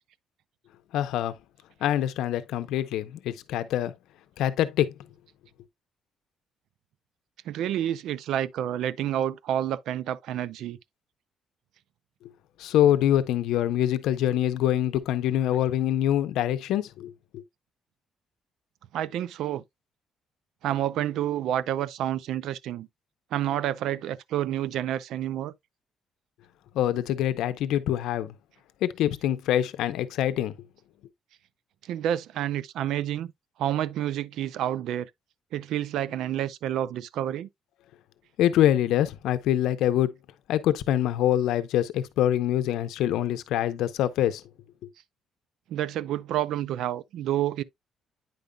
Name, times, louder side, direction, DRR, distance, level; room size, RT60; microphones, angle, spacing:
voice 1, 0.9-1.4 1.8-3.9 4.4-5.0 12.2-12.3 12.6-17.4 26.7-28.3 28.8-30.5 38.4-40.1 40.5-44.4, left 11 dB, 85° left, 0.6 m, -25 dB
voice 2, 7.5-10.8 18.9-19.6 20.6-22.9 23.3-25.5 31.8-33.3 33.6-35.1 35.5-37.5 45.7-47.6, right 11 dB, 70° right, 0.4 m, -29 dB
9.3 x 5.2 x 2.2 m
cardioid pair, 170°, 0 cm